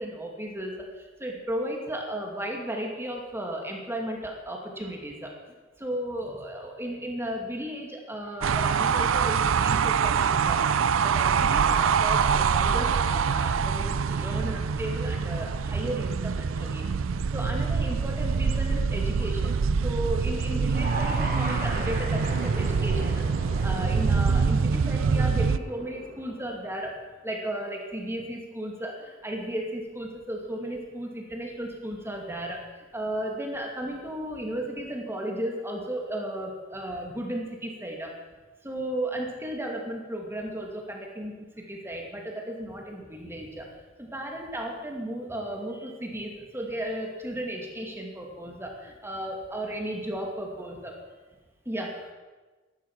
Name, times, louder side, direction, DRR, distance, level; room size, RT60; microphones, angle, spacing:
voice 1, 0.0-5.3 5.8-16.9 17.3-26.9 27.2-38.1 38.6-43.7 44.0-51.0 51.7-52.1, right 1 dB, 10° right, 0 dB, 2.5 m, -35 dB
sound 1, 8.4-25.6, right 6 dB, 75° right, 0.5 m, -25 dB
sound 2, 20.6-26.9, right 2 dB, 50° right, 3.3 m, -37 dB
13.0 x 12.0 x 6.1 m, 1.3 s
head